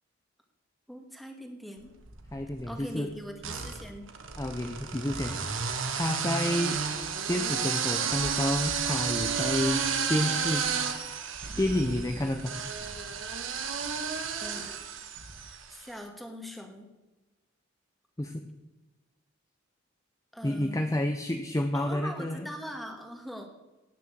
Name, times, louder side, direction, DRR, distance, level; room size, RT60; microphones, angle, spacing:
voice 1, 0.9-1.9 2.6-4.1 14.4-14.8 15.4-16.9 20.3-20.9 21.7-23.5, equal, ahead, 3 dB, 2.0 m, -42 dB
sound 1, 2.0-2.7 3.4-15.7, right 6 dB, 80° right, 1.6 m, -32 dB
voice 2, 2.3-3.1 4.4-5.3 5.9-6.8 7.2-9.8 10.1-10.7 11.6-12.5 18.2-18.4 20.4-22.4, left 1 dB, 15° left, 6 dB, 0.8 m, -29 dB
18.0 x 6.8 x 7.5 m, 1.1 s
head